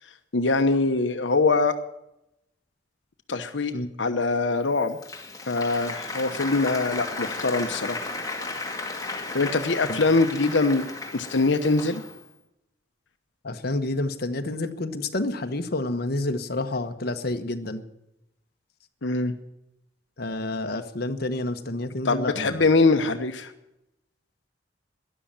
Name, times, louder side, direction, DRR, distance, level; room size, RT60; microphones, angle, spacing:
voice 1, 0.0-1.7 3.3-3.7 4.0-5.0 5.5-8.0 9.3-10.9 11.1-12.0 19.0-19.3 22.0-23.5, left 3 dB, 85° left, 8 dB, 1.0 m, -23 dB
Applause, 4.7-12.3, left 3 dB, 20° left, 2.2 m, -35 dB
voice 2, 13.4-17.8 20.2-22.6, left 2 dB, 60° left, 6 dB, 1.2 m, -29 dB
13.0 x 11.0 x 8.8 m, 0.86 s
head